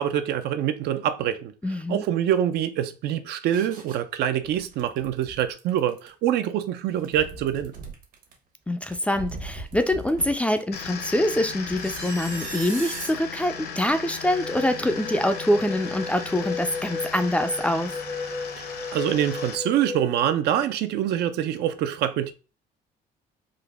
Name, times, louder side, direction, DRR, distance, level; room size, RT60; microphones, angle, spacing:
voice 1, 0.0-1.5 1.9-7.7 18.6-22.3, right 10 dB, 75° right, 0.5 m, -25 dB
voice 2, 1.6-2.0 8.7-18.0, left 1 dB, 5° left, 0.3 m, -25 dB
sound 1, 3.5-4.0 4.4-6.1 6.9-8.3 8.9-10.6 11.7-13.1 13.8-13.9, right 4 dB, 55° right, 1.0 m, -39 dB
sound 2, 10.7-19.6, left 6 dB, 65° left, 0.8 m, -37 dB
sound 3, 14.2-20.2, left 4 dB, 35° right, 0.8 m, -35 dB
3.8 x 2.1 x 3.3 m
cardioid pair, 110°, 17 cm